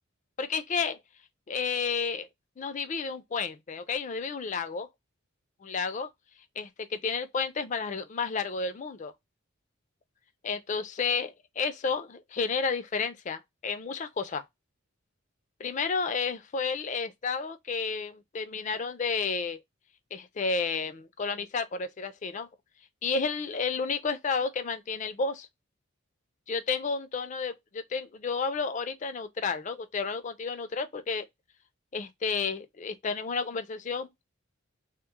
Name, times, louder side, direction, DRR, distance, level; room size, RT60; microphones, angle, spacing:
voice 1, 0.4-1.0 1.5-2.3 2.6-4.9 5.6-6.1 6.6-9.1 10.4-14.4 15.6-19.6 20.1-22.5 23.0-25.5 26.5-31.3 31.9-34.1, left 5 dB, 35° left, 0.4 m, -31 dB
2.9 x 2.0 x 3.5 m
head